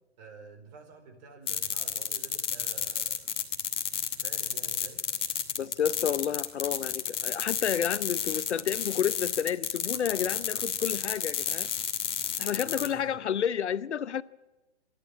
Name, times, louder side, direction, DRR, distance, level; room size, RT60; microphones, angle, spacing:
voice 1, 0.2-3.4 4.2-5.0 12.6-13.1, right 4 dB, 40° right, 4.8 m, -49 dB
sound 1, 1.5-12.9, left 8 dB, 15° left, 1.5 m, -31 dB
voice 2, 5.6-11.7 12.4-14.2, left 8 dB, 80° left, 0.8 m, -30 dB
26.0 x 11.5 x 8.6 m
hypercardioid pair, 140°, 34 cm